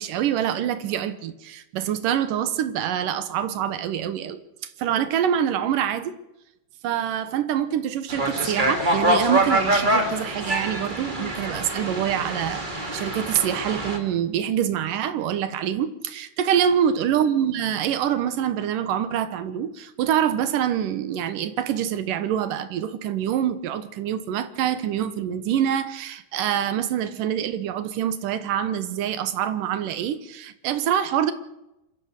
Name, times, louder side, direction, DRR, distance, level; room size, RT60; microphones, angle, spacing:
voice 1, 0.0-4.4 4.8-6.1 6.8-12.6 12.9-31.3, right 9 dB, 65° right, 2.2 m, -25 dB
sound 1, 8.1-14.0, right 1 dB, 20° right, 1.4 m, -25 dB
27.0 x 14.5 x 6.7 m
omnidirectional pair, 5.1 m